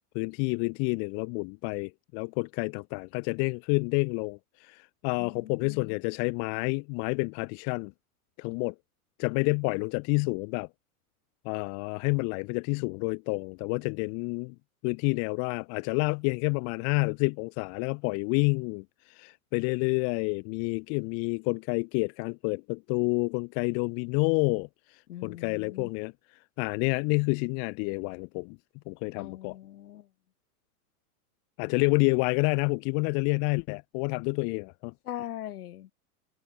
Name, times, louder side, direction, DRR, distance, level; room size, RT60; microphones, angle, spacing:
voice 1, 0.1-7.9 8.4-8.7 9.2-10.7 11.4-14.5 14.8-18.8 19.2-24.7 25.2-26.1 26.6-28.6 28.9-29.5 31.6-34.9, left 36 dB, 35° left, 0.6 m, -29 dB
voice 2, 5.2-6.0 25.1-25.9 29.2-30.1 35.0-35.9, left 12 dB, 80° left, 3.2 m, -41 dB
hypercardioid pair, 130°, 45 cm